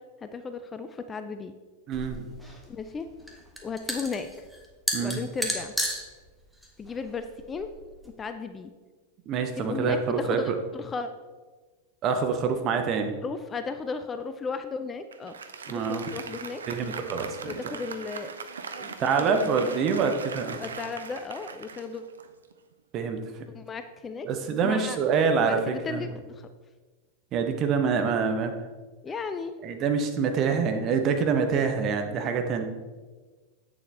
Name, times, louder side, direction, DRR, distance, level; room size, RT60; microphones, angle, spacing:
voice 1, 0.2-1.5 2.7-3.1 3.6-4.3 5.0-5.7 6.8-7.7 8.2-8.7 9.6-11.1 13.2-15.3 15.7-16.6 17.4-18.3 18.8-19.7 20.0-20.2 20.6-22.0 23.5-25.0 25.4-26.5 29.0-29.5, left 4 dB, 20° left, 9 dB, 0.4 m, -35 dB
sound 1, 1.9-8.1, equal, ahead, 1.1 m, -34 dB
voice 2, 1.9-2.3 4.9-5.2 9.3-10.5 12.0-13.1 15.7-16.0 16.7-17.5 19.0-20.6 22.9-23.2 24.2-26.0 27.3-28.5 29.6-32.7, right 5 dB, 35° right, 6 dB, 0.9 m, -26 dB
Applause, 15.1-22.7, right 5 dB, 70° right, 0.5 m, -40 dB
8.3 x 6.8 x 3.4 m, 1.3 s
figure-of-eight pair, 90°, 0 cm